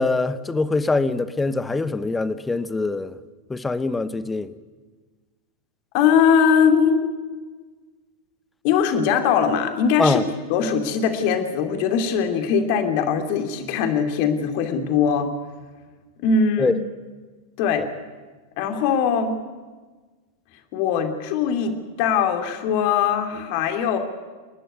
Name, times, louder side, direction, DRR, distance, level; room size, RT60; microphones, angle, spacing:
voice 1, 0.0-3.1 3.5-4.5 10.0-10.3 16.6-16.8 17.8-17.9, left 3 dB, 10° left, 13 dB, 1.1 m, -23 dB
voice 2, 5.9-7.1 8.6-15.3 16.2-16.8 17.6-17.8 18.6-19.4 20.7-24.0, left 7 dB, 45° left, 5 dB, 2.7 m, -21 dB
28.0 x 11.5 x 9.8 m, 1.4 s
figure-of-eight pair, 90°, 0 cm